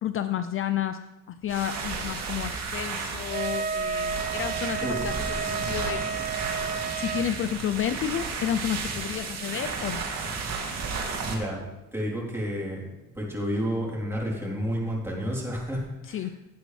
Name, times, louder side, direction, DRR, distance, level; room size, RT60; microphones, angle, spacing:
voice 1, 0.0-1.0 1.3-6.0 7.0-10.1 16.0-16.4, left 10 dB, 40° left, 10 dB, 0.5 m, -31 dB
sound 1, 1.4-11.3, right 4 dB, 55° right, 2.5 m, -33 dB
Wind instrument woodwind instrument, 3.3-7.3, right 5 dB, 25° right, 0.6 m, -31 dB
voice 2, 4.8-5.2 11.3-11.6 11.9-12.8 13.1-16.4, equal, 10° right, -3 dB, 3.6 m, -30 dB
16.5 x 8.6 x 3.3 m, 1.0 s
cardioid pair, 110°, 32 cm